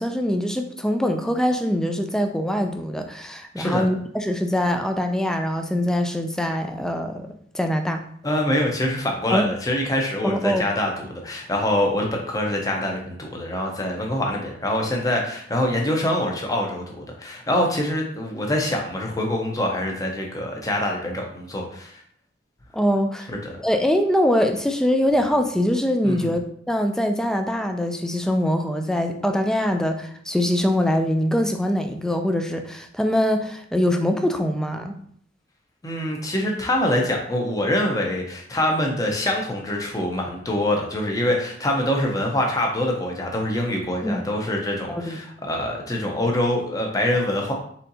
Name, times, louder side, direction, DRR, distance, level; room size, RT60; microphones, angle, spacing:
voice 1, 0.0-7.3 7.5-8.0 9.3-9.5 10.2-10.6 22.7-23.3 23.6-26.4 26.7-35.0 44.0-44.2 44.9-45.2, equal, 5° left, 5 dB, 0.3 m, -23 dB
voice 2, 8.2-22.0 23.3-23.5 26.0-26.3 35.8-47.5, left 1 dB, 20° left, 0 dB, 0.7 m, -25 dB
4.3 x 3.7 x 2.7 m, 0.63 s
head